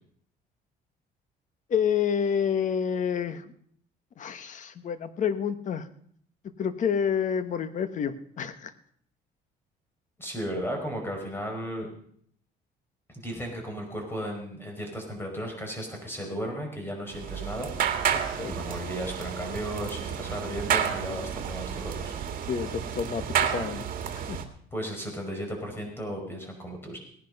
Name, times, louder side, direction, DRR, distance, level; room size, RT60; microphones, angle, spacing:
voice 1, 1.7-3.5 4.2-5.9 6.6-8.7 18.1-18.5 22.5-24.4, left 7 dB, 45° left, 12 dB, 1.3 m, -29 dB
voice 2, 10.2-11.9 13.1-17.7 18.4-22.1 24.7-27.0, equal, 15° left, 2 dB, 5.1 m, -35 dB
sound 1, 17.1-24.4, right 8 dB, 55° right, 2.1 m, -31 dB
18.0 x 11.0 x 5.4 m, 0.62 s
cardioid pair, 110°, 17 cm